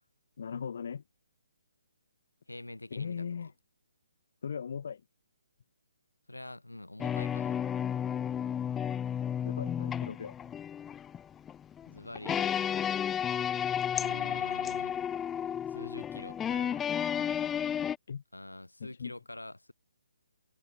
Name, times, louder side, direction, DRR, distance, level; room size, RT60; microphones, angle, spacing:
voice 1, 0.4-1.0 2.9-3.5 4.4-5.0 9.4-10.4 18.1-18.2 18.8-19.1, left 6 dB, 50° left, 0.8 m, -38 dB
voice 2, 2.5-3.3 6.3-7.6 11.8-12.6 13.9-15.0 15.7-16.8 18.3-19.7, left 2 dB, 80° left, 3.2 m, -45 dB
sound 1, 7.0-18.0, left 9 dB, 10° left, 0.6 m, -32 dB
figure-of-eight pair, 135°, 0 cm